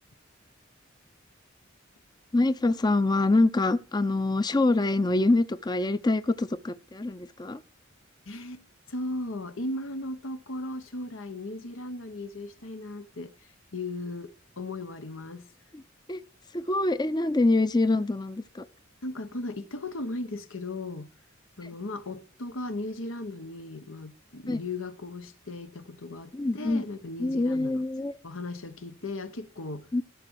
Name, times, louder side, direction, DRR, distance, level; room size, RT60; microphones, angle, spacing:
voice 1, 2.3-7.6 15.7-15.8 16.1-16.2 16.5-18.7 21.6-21.7 24.5-24.6 26.3-26.8 27.2-28.2 29.9-30.0, left 2 dB, 20° left, 0.5 m, -25 dB
voice 2, 8.3-13.3 13.7-15.5 19.0-21.1 21.6-27.8 28.2-29.9, left 2 dB, 90° left, 1.3 m, -37 dB
15.0 x 6.8 x 4.7 m
head